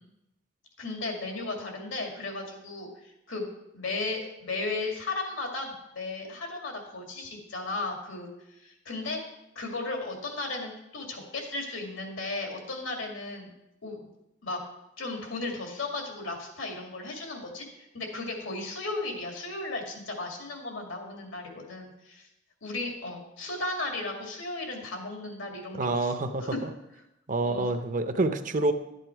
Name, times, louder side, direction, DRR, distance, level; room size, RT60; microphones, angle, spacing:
voice 1, 0.8-8.3 8.6-9.2 9.6-13.5 13.8-14.1 14.4-14.6 15.0-22.3 22.6-26.1 26.4-26.6 27.3-27.7, left 2 dB, 80° left, 1 dB, 2.3 m, -35 dB
voice 2, 25.8-26.7 27.3-28.7, right 2 dB, 45° right, 9 dB, 0.7 m, -27 dB
11.5 x 8.0 x 4.6 m, 0.89 s
head